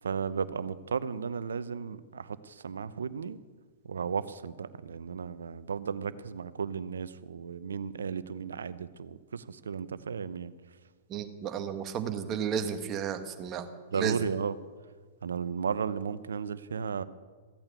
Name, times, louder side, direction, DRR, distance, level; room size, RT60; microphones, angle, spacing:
voice 1, 0.0-3.4 3.8-10.5 13.9-14.6 15.2-17.0, right 6 dB, 80° right, 15 dB, 0.7 m, -34 dB
voice 2, 11.1-13.7 13.9-14.2, right 8 dB, 30° right, 8 dB, 1.5 m, -33 dB
15.5 x 8.8 x 8.3 m, 1.5 s
hypercardioid pair, 115°, 0 cm